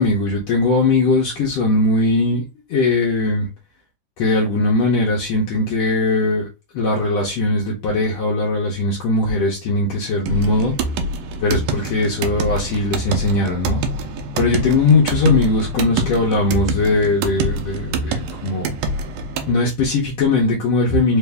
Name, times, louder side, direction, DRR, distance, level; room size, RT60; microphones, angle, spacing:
voice 1, 0.0-3.5 4.2-6.5 6.7-10.7 11.4-13.8 14.4-18.7 19.5-21.2, left 2 dB, 70° left, 1.8 m, -19 dB
sound 1, 10.3-19.5, right 2 dB, 80° right, 1.5 m, -25 dB
4.7 x 2.6 x 3.4 m
omnidirectional pair, 3.5 m